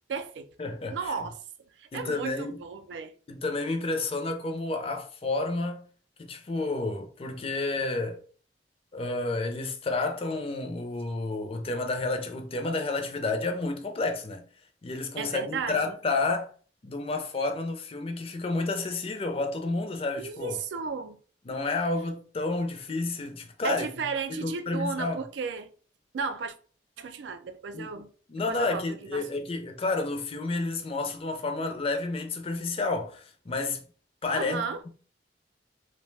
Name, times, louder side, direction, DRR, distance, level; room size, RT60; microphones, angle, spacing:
voice 1, 0.1-0.5 0.9-1.4 1.8-3.1 15.2-15.9 20.2-21.2 23.6-25.7 26.1-26.5 27.0-28.1 28.5-29.3 34.3-34.8, right 5 dB, 75° right, 0.3 m, -34 dB
voice 2, 0.6-1.1 1.9-2.6 3.3-5.8 6.2-8.2 8.9-14.4 14.8-16.5 16.8-20.6 21.5-23.9 24.3-25.2 27.7-27.9 28.3-33.8 34.2-34.9, left 3 dB, 30° left, 0.4 m, -30 dB
2.6 x 2.1 x 3.2 m
head